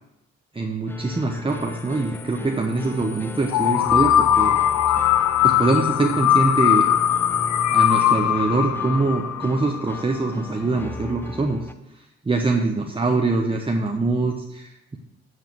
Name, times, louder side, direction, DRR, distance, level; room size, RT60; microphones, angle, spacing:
voice 1, 0.5-4.6 5.4-6.9 7.7-11.6 12.0-15.0, right 3 dB, 20° right, 2 dB, 0.9 m, -24 dB
sound 1, 0.9-11.7, left 3 dB, 5° left, 0.6 m, -36 dB
sound 2, 3.5-10.3, left 11 dB, 70° left, 0.6 m, -20 dB
9.2 x 4.8 x 7.7 m, 0.90 s
cardioid pair, 90°, 30 cm